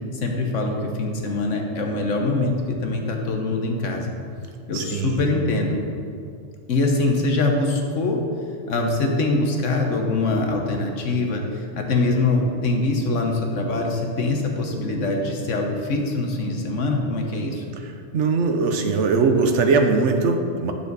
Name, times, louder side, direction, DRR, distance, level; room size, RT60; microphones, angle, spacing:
voice 1, 0.1-4.1 4.7-5.8 6.7-8.2 8.7-17.6, left 2 dB, 80° left, 2 dB, 1.4 m, -23 dB
voice 2, 4.7-5.2 18.1-20.7, right 4 dB, 70° right, 5 dB, 1.1 m, -20 dB
9.7 x 7.0 x 4.0 m, 2.4 s
omnidirectional pair, 1.3 m